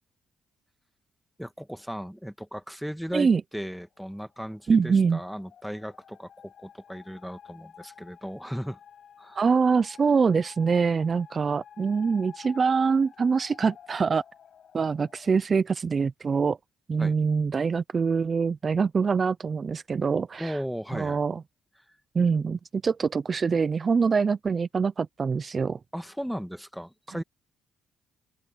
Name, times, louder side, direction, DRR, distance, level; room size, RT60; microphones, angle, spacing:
voice 1, 1.4-8.8 9.2-9.4 17.0-17.2 20.4-21.2 25.9-27.2, equal, ahead, 1.9 m, -36 dB
sound 1, 3.9-15.3, left 8 dB, 60° left, 6.6 m, -51 dB
voice 2, 4.7-5.2 9.4-14.2 14.7-16.6 16.9-20.6 20.9-21.4 22.1-25.8 27.1-27.2, right 5 dB, 40° right, 0.5 m, -24 dB
open air
cardioid pair, 90°, 0 cm